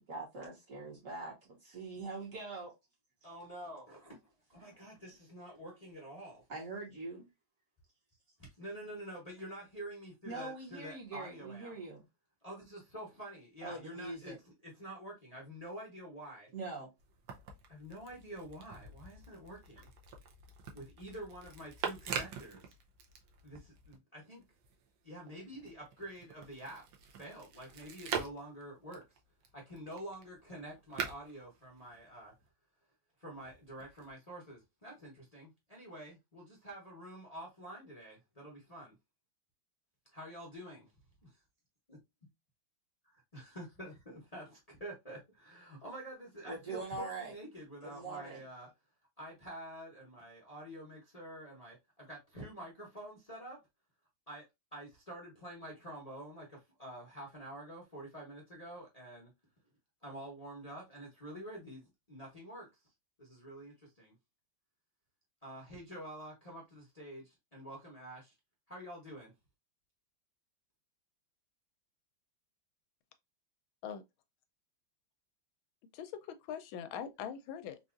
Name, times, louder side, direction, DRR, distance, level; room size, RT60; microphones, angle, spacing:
voice 1, 0.1-2.7 5.1-5.2 6.5-7.3 10.2-12.1 13.6-14.4 16.5-16.9 46.4-47.3 47.8-48.5, right 3 dB, 45° right, 1.4 m, -43 dB
voice 2, 3.2-4.2 4.5-6.4 8.6-11.7 12.4-14.3 14.6-16.5 17.7-19.9 20.7-22.6 23.4-24.4 25.0-26.8 27.2-29.0 29.5-32.3 33.2-38.9 40.1-40.9 41.2-41.3 41.9-42.0 43.0-48.7 49.2-53.6 54.3-54.5 54.7-59.3 60.0-61.8 62.1-62.7 63.2-64.1 65.4-67.2 67.5-68.3 68.7-69.3, right 1 dB, 30° left, 0.7 m, -48 dB
sound 1, 17.0-24.0 24.4-32.5 33.3-34.1, right 6 dB, 70° right, 1.2 m, -45 dB
voice 3, 75.9-77.8, left 8 dB, 85° left, 1.4 m, -42 dB
4.0 x 2.4 x 2.4 m
omnidirectional pair, 2.1 m